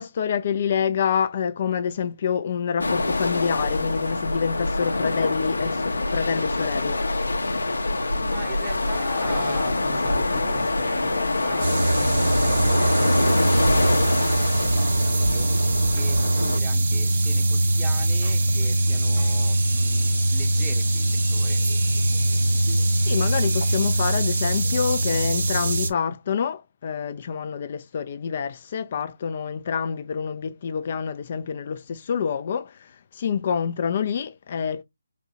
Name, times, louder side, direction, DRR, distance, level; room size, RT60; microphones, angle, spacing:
voice 1, 0.0-7.0 23.0-34.8, left 7 dB, 40° left, 0.4 m, -27 dB
sound 1, 2.8-16.6, left 2 dB, 80° left, 0.7 m, -25 dB
voice 2, 8.1-21.6, right 4 dB, 15° right, 0.8 m, -40 dB
sound 2, 11.6-25.9, right 2 dB, 55° right, 0.9 m, -22 dB
4.0 x 2.3 x 2.8 m
figure-of-eight pair, 155°, 0 cm